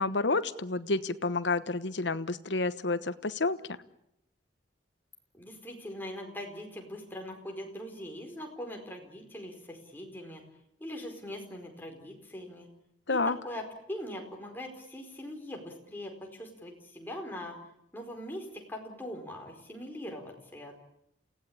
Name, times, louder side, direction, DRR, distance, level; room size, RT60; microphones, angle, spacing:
voice 1, 0.0-3.8 13.1-13.4, left 3 dB, 70° left, 13 dB, 1.1 m, -29 dB
voice 2, 5.3-10.4 10.8-12.7 13.1-17.6 17.9-20.7, left 1 dB, 10° left, 1 dB, 4.7 m, -41 dB
29.0 x 17.0 x 8.8 m, 0.80 s
head